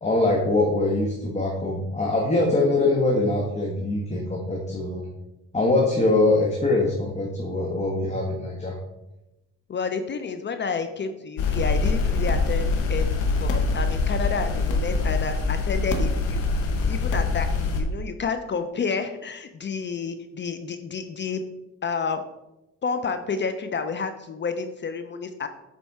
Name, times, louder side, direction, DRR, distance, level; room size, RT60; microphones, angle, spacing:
voice 1, 0.0-5.1 5.5-8.7, left 2 dB, 25° left, -1 dB, 1.1 m, -23 dB
voice 2, 9.7-16.4 16.9-21.4 21.8-22.2 22.8-25.5, left 5 dB, 40° left, 8 dB, 0.5 m, -30 dB
sound 1, 11.4-17.8, left 3 dB, 85° left, 1.0 m, -24 dB
7.1 x 4.1 x 3.5 m, 0.94 s
cardioid pair, 90°, 30 cm